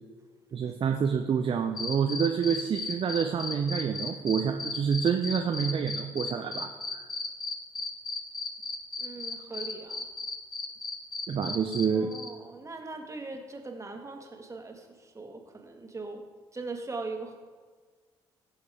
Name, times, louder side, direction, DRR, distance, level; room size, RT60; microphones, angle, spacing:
voice 1, 0.5-7.0 11.3-12.1, right 7 dB, 40° right, 5 dB, 0.7 m, -28 dB
sound 1, 1.8-11.9 12.1-12.3, left 3 dB, 35° left, 1.4 m, -34 dB
voice 2, 9.0-10.1 11.9-16.2 16.5-17.4, right 3 dB, 25° right, 3 dB, 1.7 m, -40 dB
16.0 x 6.5 x 3.5 m, 1.5 s
hypercardioid pair, 50°, 13 cm